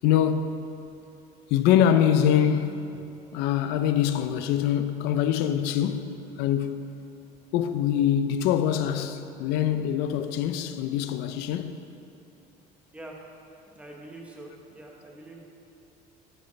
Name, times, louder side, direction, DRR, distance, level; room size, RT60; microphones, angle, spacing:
voice 1, 0.0-0.7 1.5-3.0 3.3-6.8 7.5-11.8, left 9 dB, 75° left, 0.5 m, -24 dB
voice 2, 13.7-15.5, right 1 dB, 5° right, 1.1 m, -44 dB
12.0 x 8.1 x 3.2 m
cardioid pair, 155°, 17 cm